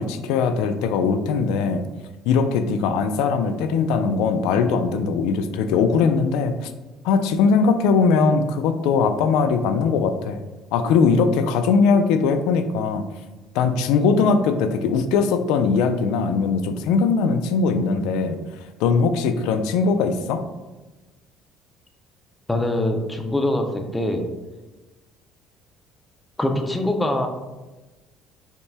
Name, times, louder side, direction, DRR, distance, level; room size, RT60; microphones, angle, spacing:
voice 1, 0.0-1.8 2.3-6.7 7.0-10.4 10.7-13.0 13.5-18.4 18.8-20.4, left 5 dB, 85° left, 8 dB, 0.3 m, -20 dB
voice 2, 22.5-24.2 26.4-27.3, left 1 dB, 5° left, 4 dB, 0.3 m, -23 dB
5.5 x 2.2 x 3.3 m, 1.1 s
cardioid pair, 180°, 0 cm